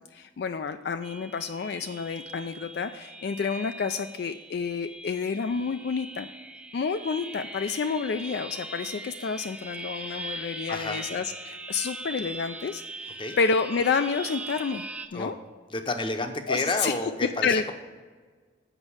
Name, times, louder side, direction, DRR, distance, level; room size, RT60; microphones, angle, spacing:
voice 1, 0.1-6.3 6.7-14.9 15.1-15.4 16.5-17.0 17.4-17.7, left 5 dB, 55° left, 9 dB, 0.3 m, -29 dB
sound 1, 1.0-15.1, right 2 dB, 5° right, 0.4 m, -41 dB
voice 2, 10.7-11.0 13.2-13.4 15.1-15.3 15.7-17.7, left 2 dB, 25° left, 7 dB, 0.7 m, -30 dB
8.1 x 5.3 x 7.1 m, 1.5 s
head